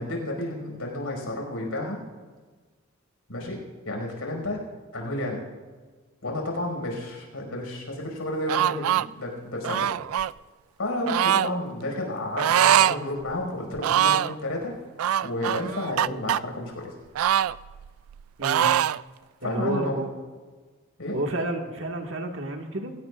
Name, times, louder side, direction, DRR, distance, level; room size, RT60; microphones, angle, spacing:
voice 1, 0.0-2.0 3.3-3.6 3.9-4.6 4.9-5.4 6.2-9.9 10.8-14.7 15.2-16.9 19.4-19.9 21.0-21.2, left 1 dB, 90° left, 0 dB, 5.4 m, -31 dB
sound 1, 8.5-9.1 9.6-10.3 11.1-11.5 12.4-13.0 13.3-13.4 13.8-14.3 15.0-16.4 17.2-18.2 18.4-19.0, right 10 dB, 85° right, 0.3 m, -22 dB
voice 2, 19.4-20.1 21.1-22.9, right 1 dB, 65° right, 3 dB, 1.7 m, -30 dB
25.0 x 17.0 x 2.5 m, 1.4 s
head